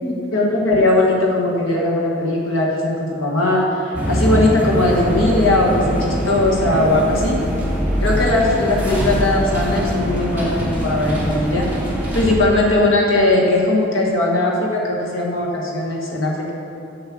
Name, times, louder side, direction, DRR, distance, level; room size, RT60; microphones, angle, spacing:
voice 1, 0.0-7.4 8.0-11.6 12.1-16.5, left 2 dB, 80° left, -2 dB, 1.6 m, -19 dB
sound 1, 3.9-12.4, equal, 10° right, 2.3 m, -22 dB
7.7 x 7.2 x 6.0 m, 2.8 s
head